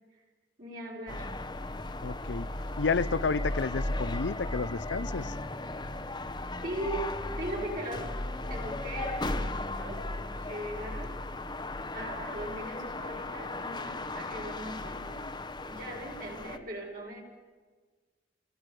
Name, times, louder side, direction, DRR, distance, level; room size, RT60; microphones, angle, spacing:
voice 1, 0.6-1.3 6.6-8.2 8.5-10.1 10.5-11.2 11.9-15.3 15.6-17.2, right 1 dB, 50° right, -2 dB, 5.6 m, -39 dB
sound 1, 1.1-16.6, left 2 dB, 25° left, 0.9 m, -36 dB
voice 2, 2.0-2.5 2.8-5.3, left 4 dB, 75° left, 17 dB, 0.6 m, -31 dB
29.5 x 21.5 x 4.9 m, 1.4 s
head